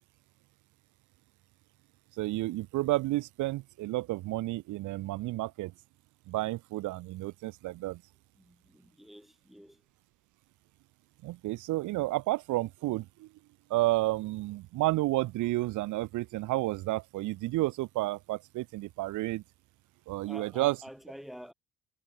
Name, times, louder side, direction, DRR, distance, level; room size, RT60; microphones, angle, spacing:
voice 1, 2.2-5.7 6.3-8.0 11.2-13.3 13.7-19.4 20.1-20.8, right 18 dB, 80° right, 0.6 m, -31 dB
voice 2, 8.3-9.8 20.2-21.5, equal, ahead, 4.3 m, -48 dB
cardioid pair, 90°, 30 cm